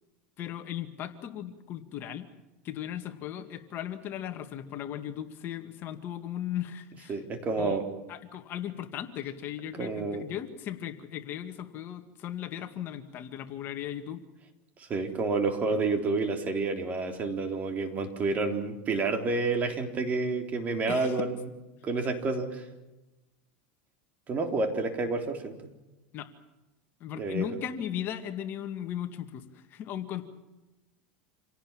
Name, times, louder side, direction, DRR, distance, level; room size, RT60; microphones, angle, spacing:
voice 1, 0.4-2.3 2.6-7.2 7.6-7.8 8.1-14.2 20.9-21.3 26.1-26.3 27.0-30.3, left 10 dB, 40° left, 7 dB, 2.1 m, -37 dB
voice 2, 7.1-7.9 9.8-10.2 14.8-21.4 21.8-22.7 24.3-25.6 27.2-27.5, right 3 dB, 30° right, 5 dB, 3.7 m, -29 dB
27.5 x 17.5 x 7.5 m, 1.0 s
supercardioid pair, 130°, 5 cm